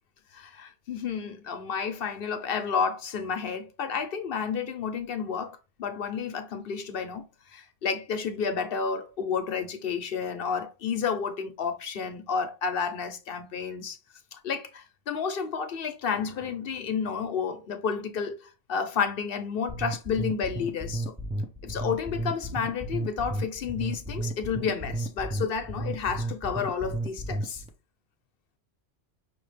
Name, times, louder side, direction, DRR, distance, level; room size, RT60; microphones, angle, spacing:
voice 1, 0.3-7.2 7.5-14.0 14.3-18.4 18.7-21.1 21.6-27.6, left 6 dB, 55° left, 0.8 m, -31 dB
sound 1, 19.7-27.7, right 1 dB, 10° right, 0.3 m, -33 dB
6.0 x 2.3 x 3.3 m
omnidirectional pair, 1.2 m